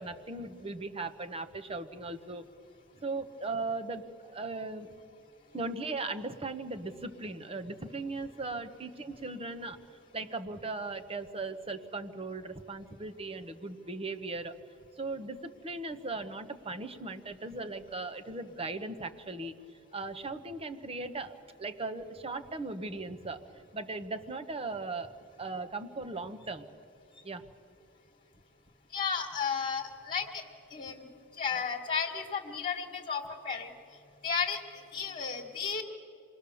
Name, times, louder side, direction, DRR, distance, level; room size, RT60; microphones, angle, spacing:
voice 1, 0.0-2.5 3.0-4.9 5.5-9.8 10.1-14.6 14.9-19.5 19.9-26.7 27.2-27.4, right 3 dB, 30° right, 8 dB, 1.0 m, -38 dB
voice 2, 28.9-30.4 30.7-31.0 31.4-33.7 34.2-34.6 34.9-35.8, left 6 dB, 35° left, -3 dB, 1.8 m, -33 dB
27.5 x 20.5 x 7.0 m, 2.7 s
head